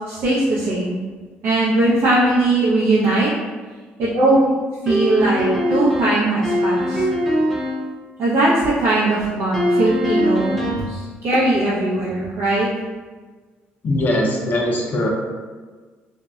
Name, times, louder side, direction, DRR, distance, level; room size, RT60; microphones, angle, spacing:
voice 1, 0.1-1.0 1.4-3.3 4.0-4.4 4.8-7.0 8.2-10.6 10.9-12.7, right 2 dB, 70° right, -8 dB, 0.5 m, -19 dB
sound 1, 4.9-7.9 9.5-11.0, equal, 5° left, 0.5 m, -21 dB
voice 2, 13.8-15.1, left 1 dB, 45° left, 0 dB, 0.5 m, -20 dB
2.6 x 2.1 x 2.2 m, 1.4 s
cardioid pair, 90°, 4 cm